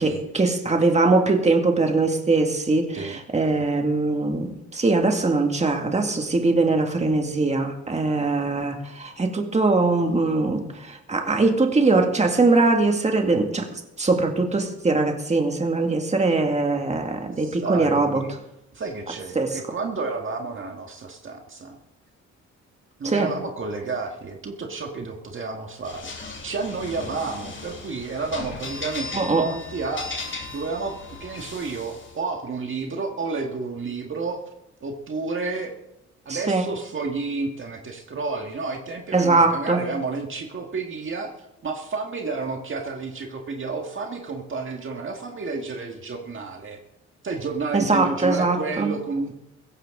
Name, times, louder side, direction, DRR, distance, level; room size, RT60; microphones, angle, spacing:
voice 1, 0.0-18.2 19.4-19.6 23.0-23.3 29.1-29.5 36.3-36.6 39.1-39.8 47.7-48.9, right 3 dB, 20° right, 4 dB, 2.0 m, -22 dB
voice 2, 17.4-18.4 18.7-21.8 23.0-26.1 26.4-30.1 30.5-34.4 34.8-35.8 36.3-41.3 41.6-46.8 47.2-49.3, right 4 dB, 40° right, 2 dB, 1.8 m, -31 dB
sound 1, 25.8-32.2, left 3 dB, 40° left, 6.1 m, -37 dB
16.0 x 15.0 x 3.8 m, 0.85 s
cardioid pair, 90°, 30 cm